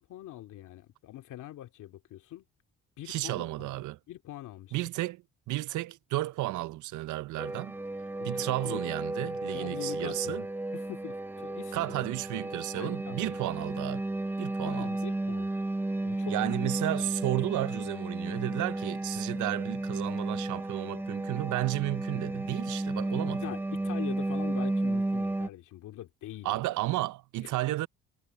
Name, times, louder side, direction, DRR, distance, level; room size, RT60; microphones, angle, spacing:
voice 1, 0.0-2.4 3.0-4.8 8.2-8.8 9.5-10.5 10.7-13.3 14.6-15.5 16.0-16.4 16.6-16.7 23.4-26.6 27.4-27.5, left 14 dB, 85° left, 2.4 m, -43 dB
voice 2, 3.1-4.0 4.7-7.8 8.2-10.4 11.7-14.0 14.4-14.9 16.3-23.4 26.4-27.9, right 17 dB, 75° right, 0.5 m, -33 dB
sound 1, 7.4-25.5, right 2 dB, 5° right, 0.5 m, -33 dB
cardioid pair, 90°, 30 cm